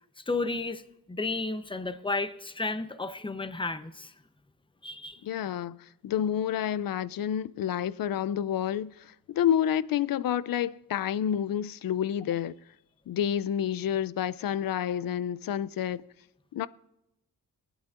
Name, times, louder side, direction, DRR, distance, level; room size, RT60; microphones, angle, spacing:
voice 1, 0.2-0.8 1.1-4.1 4.8-5.2, left 3 dB, 15° left, 0.7 m, -32 dB
voice 2, 5.2-5.8 6.0-12.5 13.1-16.0 16.5-16.7, left 9 dB, 65° left, 0.5 m, -29 dB
19.0 x 9.1 x 2.5 m
cardioid pair, 75°, 37 cm